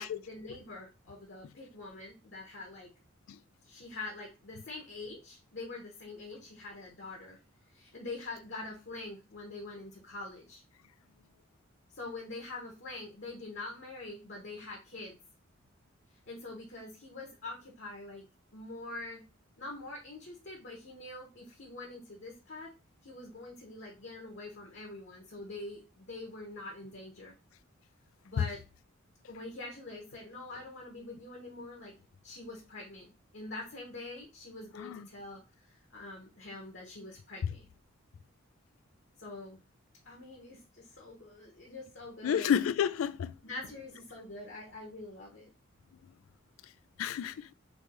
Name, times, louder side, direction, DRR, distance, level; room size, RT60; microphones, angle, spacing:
voice 1, 0.0-2.9 3.6-7.4 7.7-10.6 11.9-15.2 16.3-18.3 18.5-19.2 19.6-22.7 23.0-27.3 28.2-28.6 29.3-31.9 32.2-35.4 35.7-37.7 39.2-39.6 40.0-42.5 43.4-45.5, left 2 dB, 60° left, 1.1 m, -45 dB
voice 2, 42.2-43.3 47.0-47.5, left 8 dB, 85° left, 0.3 m, -30 dB
3.4 x 3.1 x 4.4 m
head